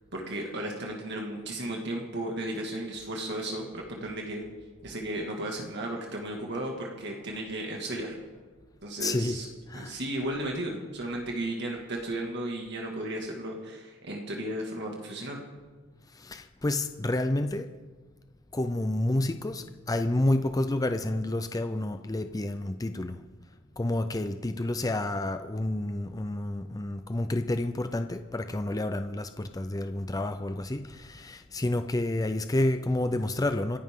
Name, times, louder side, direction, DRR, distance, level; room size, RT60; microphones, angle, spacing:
voice 1, 0.1-4.4 4.8-8.2 8.8-9.5 9.7-15.4, right 1 dB, 60° right, 0 dB, 2.1 m, -34 dB
voice 2, 9.0-9.4 9.7-10.0 16.1-17.7 18.5-23.2 23.8-33.8, left 1 dB, 20° left, 8 dB, 0.5 m, -29 dB
27.5 x 10.5 x 3.8 m, 1.4 s
head